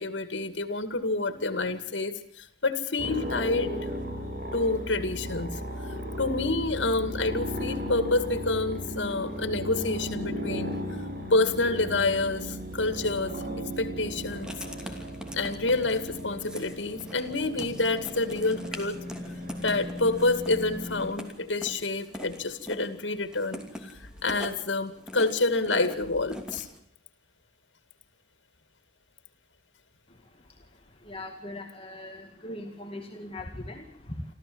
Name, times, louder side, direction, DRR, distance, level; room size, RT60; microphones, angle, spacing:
voice 1, 0.0-3.7 4.5-5.6 6.2-10.8 11.3-13.3 13.8-14.5 15.3-19.0 19.6-26.7, left 2 dB, 90° left, 11 dB, 2.2 m, -28 dB
sound 1, 3.0-21.1, equal, 55° right, 5.9 m, -36 dB
Writing, 14.3-26.8, equal, 5° right, 2.8 m, -43 dB
voice 2, 31.0-34.2, left 1 dB, 30° left, 2 dB, 2.1 m, -40 dB
27.0 x 14.5 x 7.9 m, 0.68 s
head